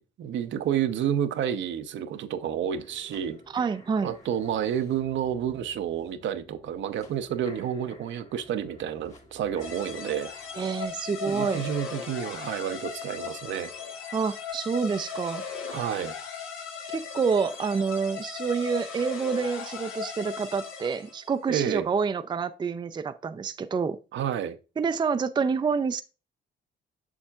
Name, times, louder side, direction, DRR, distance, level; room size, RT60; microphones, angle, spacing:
voice 1, 0.0-3.4 4.0-10.3 11.2-13.7 15.7-16.1 21.5-21.9 24.1-24.6, right 9 dB, 70° right, 0.7 m, -30 dB
sound 1, 2.7-12.7 13.1-13.2, left 1 dB, 35° left, 1.7 m, -53 dB
voice 2, 3.5-4.1 10.6-11.6 14.1-15.4 16.9-24.0 24.8-26.0, right 5 dB, 20° right, 0.4 m, -28 dB
sound 2, 9.6-21.3, left 6 dB, 85° left, 1.2 m, -38 dB
7.2 x 6.4 x 2.3 m
cardioid pair, 90°, 20 cm